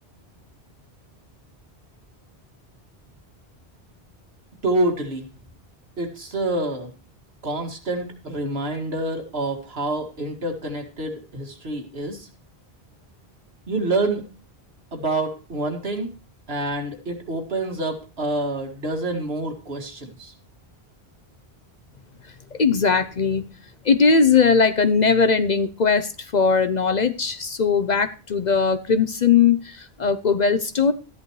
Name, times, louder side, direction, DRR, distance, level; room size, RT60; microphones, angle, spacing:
voice 1, 4.6-5.3 6.0-6.9 7.4-12.3 13.7-14.2 14.9-16.1 16.5-20.3, right 2 dB, 75° right, 3 dB, 2.3 m, -27 dB
voice 2, 22.5-23.5 23.8-30.9, left 5 dB, 50° left, 12 dB, 0.7 m, -19 dB
13.5 x 10.5 x 3.1 m, 0.34 s
omnidirectional pair, 1.1 m